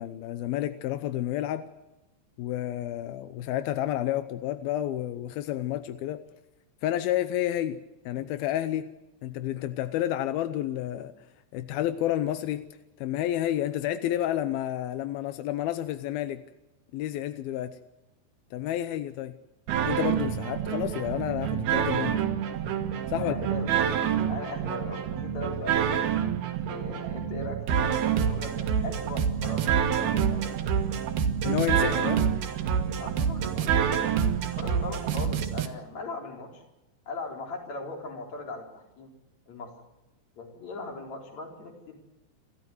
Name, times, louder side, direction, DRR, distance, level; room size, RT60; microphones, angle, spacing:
voice 1, 0.0-1.7 2.4-6.2 6.8-7.8 8.1-8.9 9.2-11.1 11.5-12.7 13.0-16.4 16.9-17.8 18.5-19.4 19.9-22.2 23.1-23.3 31.4-32.3, left 12 dB, 80° left, 11 dB, 2.2 m, -30 dB
sound 1, 19.7-35.7, right 8 dB, 65° right, 3.1 m, -27 dB
voice 2, 23.2-24.0 24.3-26.1 26.6-30.7 32.1-32.2 33.0-34.1 34.5-36.6 37.1-39.1 39.5-39.7 40.4-42.0, left 2 dB, 40° left, 1 dB, 5.1 m, -39 dB
28.5 x 14.0 x 8.0 m, 0.97 s
omnidirectional pair, 5.3 m